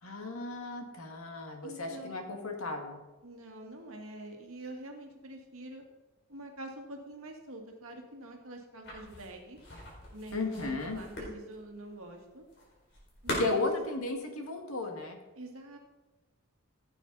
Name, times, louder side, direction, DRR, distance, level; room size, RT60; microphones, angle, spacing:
voice 1, 0.0-3.0 10.3-11.0 13.4-15.2, left 2 dB, 80° left, 3 dB, 2.0 m, -34 dB
voice 2, 1.6-2.4 3.2-5.8 6.3-9.6 10.1-12.4 13.2-13.7 15.4-15.8, right 1 dB, 70° right, 1 dB, 2.0 m, -46 dB
sound 1, 8.8-14.1, left 1 dB, 50° left, 4.1 m, -41 dB
15.5 x 8.6 x 4.1 m, 1.1 s
head